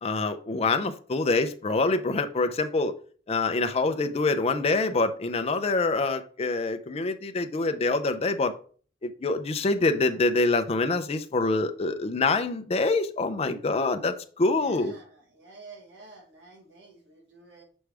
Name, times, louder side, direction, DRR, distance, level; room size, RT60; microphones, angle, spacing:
voice 1, 0.0-2.9 3.3-8.6 9.0-14.9, left 3 dB, 35° left, 0.5 m, -25 dB
voice 2, 14.5-17.6, right 3 dB, 75° right, 1.7 m, -50 dB
6.2 x 4.7 x 3.4 m
head